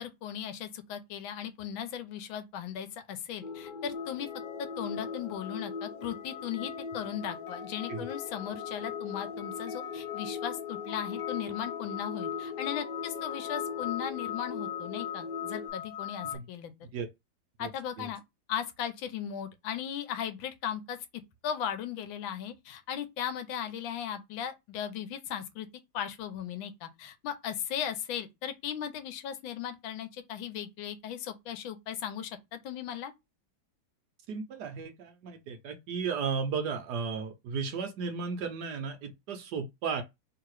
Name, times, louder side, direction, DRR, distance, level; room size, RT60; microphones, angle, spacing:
voice 1, 0.0-4.3 4.6-16.7 17.6-18.2 18.5-21.0 21.4-25.7 25.9-33.1, left 9 dB, 85° left, 1.5 m, -37 dB
sound 1, 3.4-15.7, left 5 dB, 55° left, 0.6 m, -40 dB
sound 2, 3.9-16.4, left 10 dB, 70° left, 1.0 m, -41 dB
voice 2, 34.3-40.0, right 5 dB, 65° right, 1.1 m, -34 dB
3.2 x 2.9 x 4.6 m
omnidirectional pair, 2.1 m